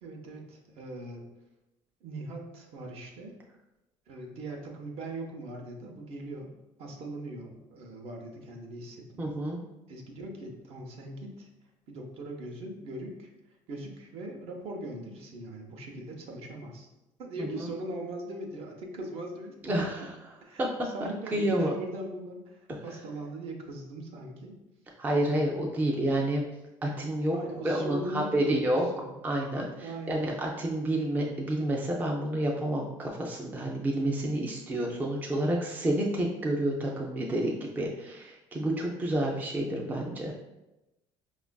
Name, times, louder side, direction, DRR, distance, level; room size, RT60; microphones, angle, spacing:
voice 1, 0.0-1.2 2.0-3.4 4.1-6.5 6.8-9.3 9.9-11.5 11.9-13.3 13.7-16.9 17.2-19.5 20.4-24.5 27.3-29.1 29.8-30.3, right 1 dB, 55° right, 1 dB, 0.7 m, -40 dB
voice 2, 9.2-9.6 17.4-17.7 19.6-20.1 20.6-20.7 21.0-21.7 25.0-26.4 26.8-27.4 27.6-28.9 29.2-40.3, right 1 dB, 15° right, -1 dB, 0.4 m, -29 dB
5.0 x 2.4 x 2.2 m, 0.97 s
cardioid pair, 150°, 12 cm